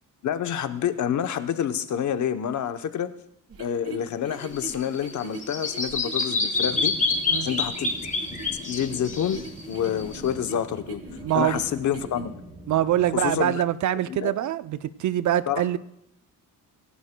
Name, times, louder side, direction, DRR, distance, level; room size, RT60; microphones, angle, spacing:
voice 1, 0.2-3.1 3.6-6.9 7.4-7.9 8.3-11.0 11.3-12.4 13.2-13.6 14.1-14.3 15.5-15.8, left 9 dB, 60° left, 0.8 m, -28 dB
sound 1, 3.5-12.2, right 3 dB, 45° right, 1.5 m, -42 dB
Bird vocalization bird call bird song, 4.4-10.3, left 3 dB, 20° left, 1.5 m, -27 dB
sound 2, 6.5-13.4, right 1 dB, 15° right, 2.8 m, -44 dB
voice 2, 11.2-11.6 12.7-15.8, right 12 dB, 60° right, 0.5 m, -24 dB
26.0 x 11.0 x 2.2 m
cardioid pair, 130°, 33 cm